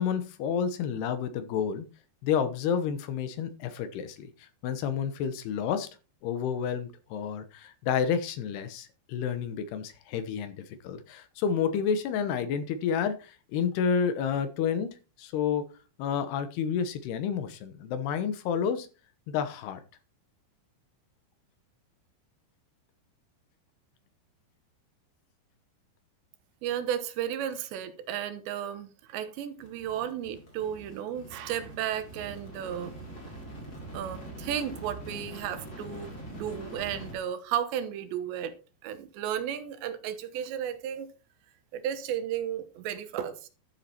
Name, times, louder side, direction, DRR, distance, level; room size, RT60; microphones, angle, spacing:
voice 1, 0.0-1.9 2.2-5.9 6.2-14.9 15.2-15.7 16.0-18.9 19.3-19.8, left 7 dB, 75° left, 3.0 m, -30 dB
voice 2, 26.6-33.0 33.9-38.5 38.8-41.1 41.7-43.5, right 9 dB, 80° right, 3.2 m, -34 dB
sound 1, 29.6-37.2, right 1 dB, 25° left, 3.6 m, -44 dB
12.5 x 7.6 x 4.4 m
omnidirectional pair, 5.1 m